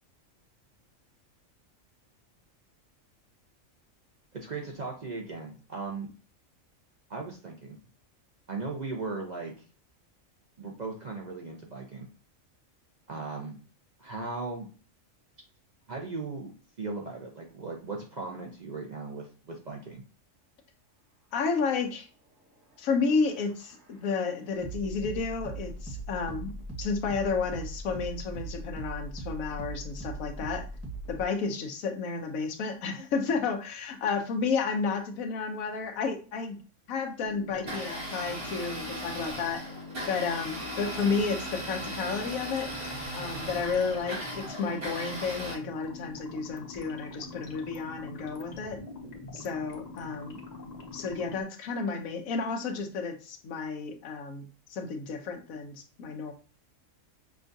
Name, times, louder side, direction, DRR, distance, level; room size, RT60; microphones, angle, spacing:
voice 1, 4.3-6.1 7.1-7.8 8.5-9.5 10.6-12.1 13.1-13.6 14.0-14.7 15.9-16.5 16.8-20.0, right 3 dB, 45° right, 0 dB, 0.6 m, -37 dB
voice 2, 21.3-22.1 22.8-30.7 31.1-36.6 36.9-39.6 40.1-42.7 43.1-48.8 49.3-50.4 50.9-56.3, left 5 dB, 85° left, 5 dB, 1.1 m, -31 dB
sound 1, 22.6-31.2, right 2 dB, 10° right, 1.0 m, -40 dB
sound 2, 37.2-51.4, left 3 dB, 40° left, 0.6 m, -44 dB
Domestic sounds home sounds, 37.5-45.5, right 1 dB, 65° right, 2.1 m, -38 dB
6.0 x 2.3 x 2.6 m, 0.37 s
omnidirectional pair, 1.4 m